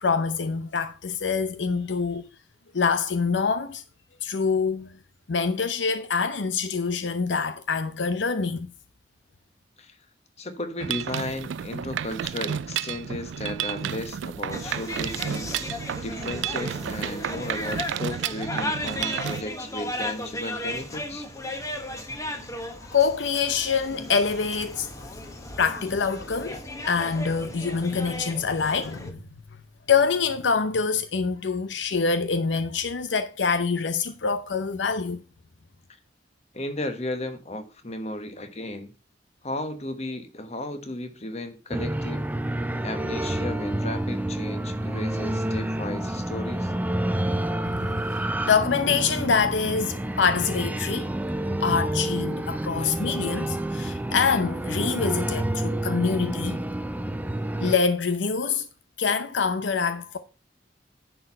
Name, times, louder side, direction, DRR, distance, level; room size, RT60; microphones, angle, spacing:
voice 1, 0.0-2.3 2.7-3.8 4.2-5.0 5.3-8.7 22.7-25.1 25.6-29.2 29.9-35.2 47.8-51.1 51.6-56.6 57.6-58.7 59.0-60.2, left 5 dB, 80° left, 0.7 m, -25 dB
voice 2, 10.4-15.8 16.0-21.3 36.5-38.9 39.4-42.2 42.8-46.7 52.8-53.1, left 1 dB, 35° left, 1.2 m, -34 dB
Mechanisms, 10.8-19.4, right 9 dB, 90° right, 0.4 m, -31 dB
sound 1, 14.5-29.1, left 1 dB, 20° left, 1.1 m, -35 dB
sound 2, 41.7-57.8, right 1 dB, 10° right, 0.4 m, -29 dB
10.0 x 4.5 x 5.4 m
head